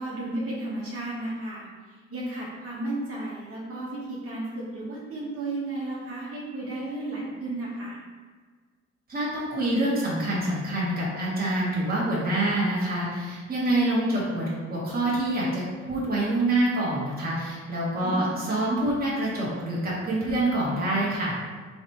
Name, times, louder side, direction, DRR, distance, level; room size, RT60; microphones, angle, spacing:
voice 1, 0.0-8.0 18.0-18.4, right 2 dB, 50° right, -7 dB, 1.3 m, -33 dB
voice 2, 9.1-21.4, right 1 dB, 30° right, -7 dB, 1.4 m, -26 dB
3.8 x 3.4 x 3.0 m, 1.5 s
cardioid pair, 90°, 30 cm